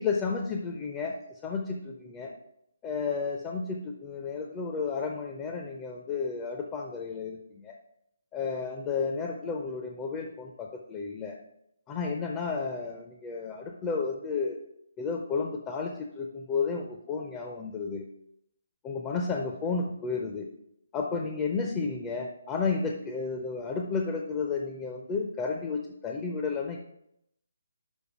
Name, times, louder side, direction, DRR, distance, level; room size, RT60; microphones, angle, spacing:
voice 1, 0.0-2.4 2.8-7.8 8.3-11.4 11.9-14.6 15.0-18.0 18.8-20.5 20.9-26.8, left 4 dB, 15° left, 2 dB, 0.6 m, -32 dB
6.4 x 4.9 x 4.8 m, 0.79 s
figure-of-eight pair, 145°, 0 cm